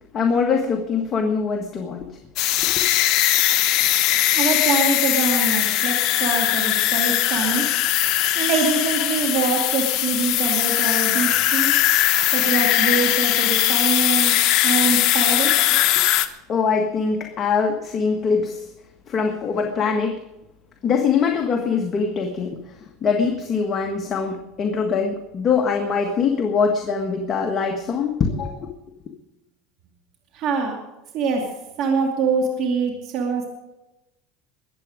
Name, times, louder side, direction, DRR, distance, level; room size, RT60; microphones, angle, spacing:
voice 1, 0.1-2.1 2.6-2.8 15.7-16.0 16.5-18.7 19.1-20.2 20.8-28.7, left 5 dB, 30° left, 3 dB, 1.5 m, -23 dB
sound 1, 2.4-16.3, left 14 dB, 55° left, 1.1 m, -20 dB
voice 2, 4.3-7.6 8.4-11.7 12.3-14.4 14.6-15.5 30.3-30.8 31.1-31.4 31.8-33.5, right 4 dB, 55° right, 1 dB, 2.5 m, -24 dB
21.5 x 8.4 x 5.1 m, 0.94 s
supercardioid pair, 130°, 0 cm